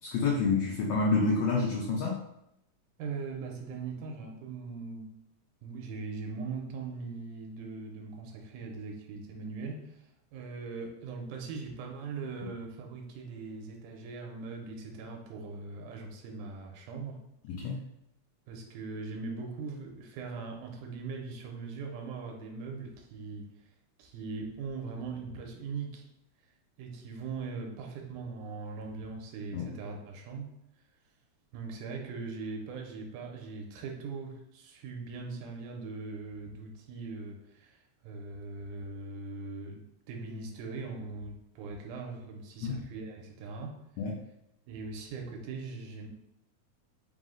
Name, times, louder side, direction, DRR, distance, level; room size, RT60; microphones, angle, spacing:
voice 1, 0.0-2.2 17.5-17.8 29.5-29.7 42.6-42.8 44.0-44.2, left 4 dB, 80° left, -2 dB, 1.5 m, -28 dB
voice 2, 3.0-5.1 5.6-17.2 18.5-23.5 24.0-26.1 26.8-30.5 31.5-43.8 44.7-46.1, right 4 dB, 85° right, 1 dB, 2.1 m, -40 dB
4.9 x 2.0 x 3.7 m, 0.79 s
omnidirectional pair, 3.5 m